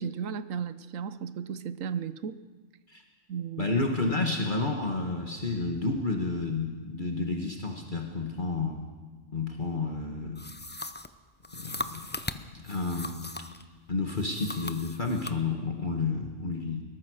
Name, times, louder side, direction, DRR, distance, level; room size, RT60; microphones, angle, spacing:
voice 1, 0.0-2.4 3.3-3.8, right 7 dB, 75° right, 14 dB, 1.2 m, -35 dB
voice 2, 3.6-8.8 9.3-10.5 11.5-12.1 12.5-13.3 13.9-16.8, left 3 dB, 35° left, 2 dB, 1.9 m, -30 dB
sound 1, 10.3-13.6 14.1-15.4, left 2 dB, 15° left, 0.4 m, -39 dB
22.0 x 19.0 x 6.5 m, 1.4 s
omnidirectional pair, 1.4 m